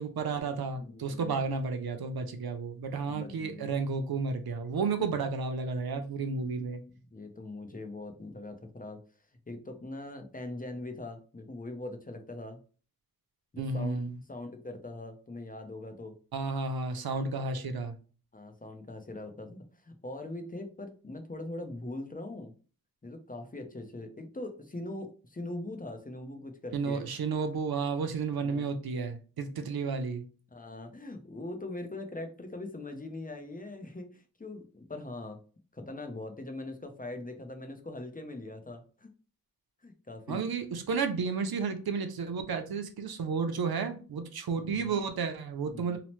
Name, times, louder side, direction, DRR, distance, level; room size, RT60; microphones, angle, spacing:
voice 1, 0.0-6.8 13.6-14.2 16.3-18.0 26.7-30.2 40.3-46.0, right 4 dB, 85° right, 7 dB, 0.5 m, -32 dB
voice 2, 0.7-1.4 3.1-3.7 7.1-9.0 9.5-12.6 13.5-16.2 18.3-22.5 23.0-27.0 28.4-28.7 30.5-35.4 35.7-39.1 39.8-40.4 44.6-44.9 45.7-46.0, left 2 dB, 25° left, 5 dB, 0.5 m, -41 dB
2.9 x 2.0 x 3.0 m, 0.38 s
wide cardioid pair, 55°, 36 cm